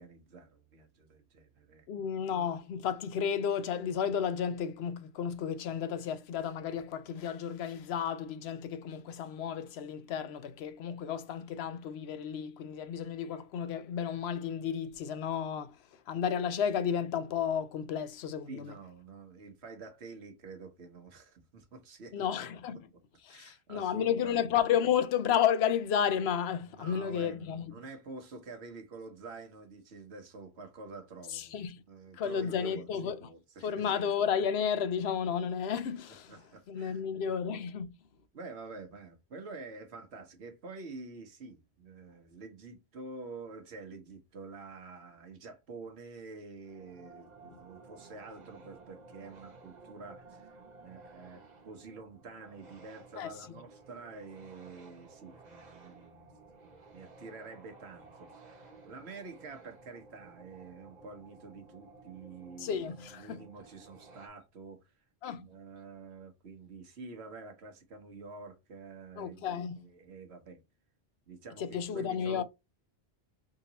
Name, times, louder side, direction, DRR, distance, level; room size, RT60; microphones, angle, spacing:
voice 1, 0.0-1.9 18.5-22.6 23.3-24.5 26.6-31.6 31.9-33.9 36.3-37.1 38.3-64.9 65.3-70.6 71.3-72.4, right 3 dB, 90° right, 1.3 m, -48 dB
voice 2, 1.9-15.8 16.1-18.7 22.1-22.8 23.3-27.8 31.3-31.7 32.2-33.2 33.6-36.3 36.7-37.9 53.2-53.3 62.6-63.4 65.2-65.4 69.2-69.7 71.6-72.4, left 8 dB, 80° left, 0.8 m, -32 dB
sound 1, 46.6-64.3, right 3 dB, 45° right, 1.1 m, -55 dB
3.8 x 2.8 x 3.9 m
omnidirectional pair, 1.1 m